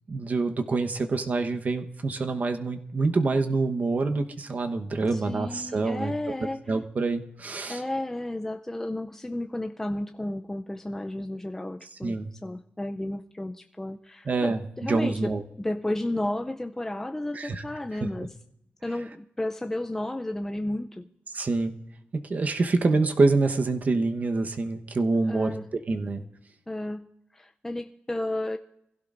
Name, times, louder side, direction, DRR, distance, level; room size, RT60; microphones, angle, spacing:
voice 1, 0.1-6.1 6.7-7.8 12.0-12.3 14.3-14.6 14.9-15.4 17.3-17.6 18.0-18.1 21.3-21.7 22.1-25.6 25.9-26.2, right 3 dB, 40° right, 6 dB, 1.0 m, -26 dB
voice 2, 5.1-6.6 7.7-18.3 18.8-21.1 25.3-25.7 26.7-28.6, left 1 dB, 10° left, 6 dB, 0.5 m, -33 dB
26.5 x 16.0 x 2.5 m, 0.80 s
wide cardioid pair, 140°, 4 cm